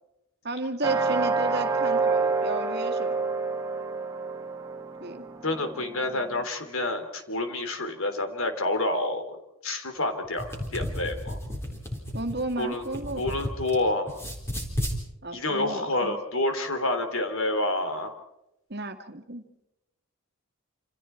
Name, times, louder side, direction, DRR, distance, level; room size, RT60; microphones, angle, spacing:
voice 1, 0.4-3.4 5.0-5.2 12.1-13.3 15.2-16.2 18.7-19.4, right 2 dB, 45° right, 5 dB, 2.1 m, -33 dB
sound 1, 0.8-6.4, right 4 dB, 15° right, 1.6 m, -28 dB
voice 2, 5.4-11.4 12.6-12.8 13.2-14.1 15.3-18.1, left 2 dB, 70° left, 6 dB, 3.4 m, -28 dB
sound 2, 10.2-13.8 14.1-15.0, equal, 10° left, 4.1 m, -33 dB
28.0 x 28.0 x 4.5 m, 0.88 s
head